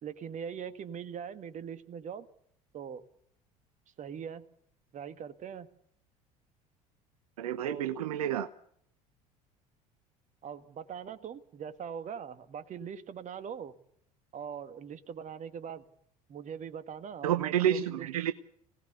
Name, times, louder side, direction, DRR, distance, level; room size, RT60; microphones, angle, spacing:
voice 1, 0.0-2.3 2.7-3.0 4.0-4.5 4.9-5.7 7.6-7.9 10.4-13.8 14.3-15.8 16.3-18.1, right 7 dB, 40° right, 12 dB, 1.7 m, -41 dB
voice 2, 7.4-8.5 17.2-18.3, right 10 dB, 70° right, 12 dB, 0.8 m, -29 dB
25.5 x 18.5 x 7.0 m, 0.68 s
figure-of-eight pair, 60°, 20 cm